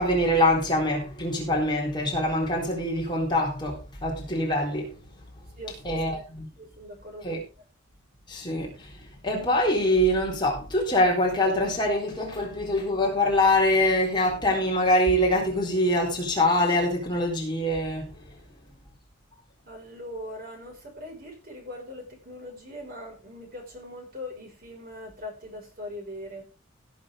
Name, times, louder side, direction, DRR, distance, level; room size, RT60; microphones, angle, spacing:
voice 1, 0.0-4.9 5.8-6.5 7.2-7.4 8.3-8.9 9.2-18.1, left 1 dB, 20° left, 3.9 m, -24 dB
voice 2, 5.6-6.2 6.6-7.4 19.6-26.4, left 1 dB, 45° right, 5.6 m, -41 dB
17.0 x 8.0 x 3.7 m
head